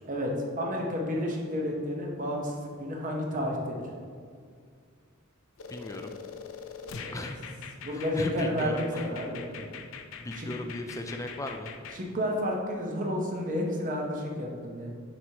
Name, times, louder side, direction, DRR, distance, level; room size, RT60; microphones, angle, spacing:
voice 1, 0.0-3.8 6.9-7.2 7.8-9.6 10.4-10.5 11.9-14.9, equal, 40° right, 0 dB, 1.0 m, -31 dB
sound 1, 5.6-12.0, left 6 dB, 65° left, 0.5 m, -43 dB
voice 2, 5.7-6.1 7.1-7.4 7.9-9.1 10.2-11.8, left 1 dB, 15° left, 4 dB, 0.4 m, -36 dB
10.0 x 4.7 x 2.9 m, 2.1 s
head